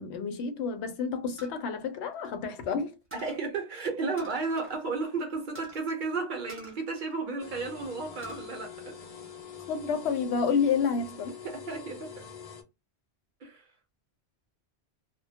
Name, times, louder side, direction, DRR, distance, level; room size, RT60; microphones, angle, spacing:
voice 1, 0.0-2.9 9.7-11.3, left 6 dB, 85° left, 0.9 m, -29 dB
sound 1, 1.4-2.7 3.1-3.4 4.2-4.8 5.1-5.2 5.5-5.8 6.5-7.6 8.0-8.5 8.9-9.7, right 1 dB, 15° right, 0.5 m, -49 dB
voice 2, 3.1-9.0 11.4-12.3 13.4-13.7, right 4 dB, 50° right, 0.7 m, -33 dB
sound 2, 7.4-12.6, left 7 dB, 50° left, 0.5 m, -45 dB
2.1 x 2.1 x 2.7 m
omnidirectional pair, 1.1 m